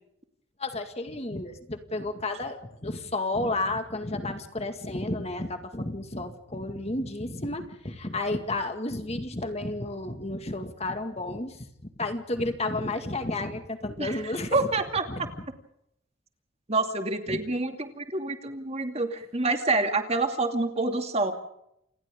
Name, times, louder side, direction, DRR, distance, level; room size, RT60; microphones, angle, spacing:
voice 1, 0.6-11.7 12.0-14.7 15.1-15.4 17.3-17.4, left 2 dB, 30° left, 7 dB, 2.0 m, -32 dB
voice 2, 14.5-15.0 16.7-21.3, right 3 dB, 30° right, 5 dB, 2.5 m, -27 dB
29.5 x 28.5 x 3.8 m, 0.77 s
head